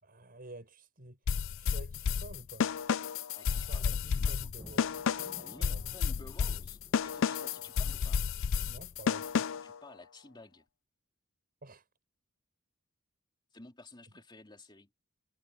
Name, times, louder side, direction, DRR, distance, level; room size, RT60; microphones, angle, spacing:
voice 1, 0.0-2.8 3.5-5.0 5.6-6.6 8.6-9.5 11.6-11.9, right 1 dB, 45° right, 6.6 m, -50 dB
sound 1, 1.3-9.8, left 6 dB, 65° left, 0.5 m, -31 dB
voice 2, 3.4-4.5 5.4-8.2 9.6-10.6 13.5-14.9, left 2 dB, 20° left, 3.1 m, -53 dB
sound 2, 4.6-9.6, equal, 5° right, 1.4 m, -58 dB
head